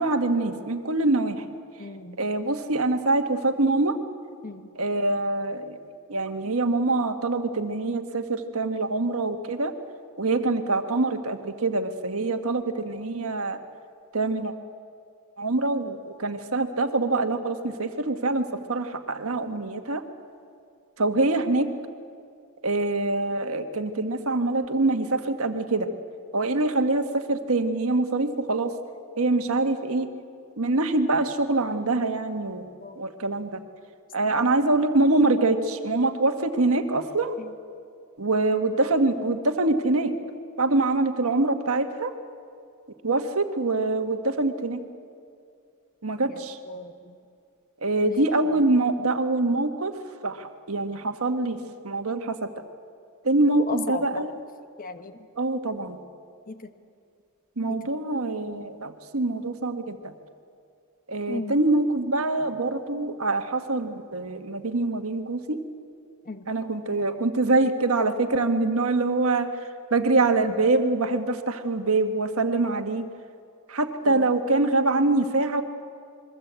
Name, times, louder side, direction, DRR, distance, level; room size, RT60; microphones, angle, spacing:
voice 1, 0.0-1.4 2.2-3.9 4.7-5.8 6.1-9.7 10.2-13.6 14.1-14.5 15.4-20.0 21.0-21.7 22.6-25.9 26.3-28.7 29.2-30.1 30.6-32.7 33.0-33.6 34.1-37.4 38.2-40.1 40.6-42.1 43.0-44.8 46.0-46.6 47.8-49.9 50.2-51.6 51.8-52.5 53.2-54.4 55.4-56.0 57.6-60.1 61.1-65.6 66.5-69.5 69.9-73.0 73.7-75.6, right 2 dB, 70° right, 6 dB, 1.5 m, -24 dB
voice 2, 1.8-2.2 4.4-4.7 32.8-33.0 46.3-46.4 46.6-47.1 48.0-48.2 53.7-54.3 54.8-55.2 56.5-56.6 61.3-61.5 66.3-66.4 74.1-74.2, left 3 dB, 40° left, 8 dB, 1.3 m, -36 dB
27.5 x 22.5 x 8.2 m, 2.3 s
head